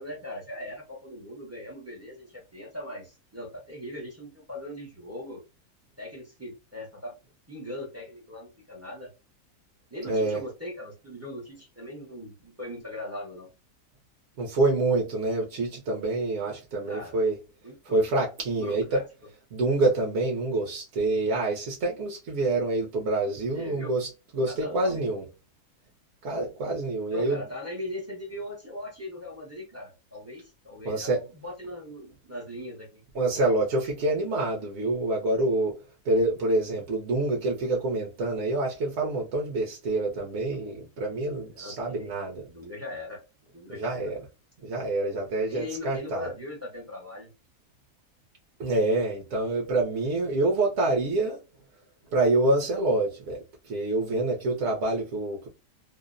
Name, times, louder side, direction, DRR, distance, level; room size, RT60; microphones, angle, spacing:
voice 1, 0.0-5.4 6.0-7.1 7.5-9.1 9.9-13.5 16.8-17.2 17.6-18.0 18.5-19.0 23.5-23.9 24.5-25.0 27.1-33.0 41.5-42.1 42.5-43.2 43.5-44.1 45.4-47.3, left 1 dB, 25° right, 0.3 m, -39 dB
voice 2, 10.1-10.4 14.4-17.3 17.9-19.0 19.5-25.2 26.2-27.4 30.8-31.2 33.1-35.7 36.0-42.5 43.7-44.2 44.6-46.3 48.6-51.4 52.1-55.5, right 2 dB, 60° right, 0.8 m, -27 dB
2.6 x 2.0 x 2.4 m
omnidirectional pair, 1.6 m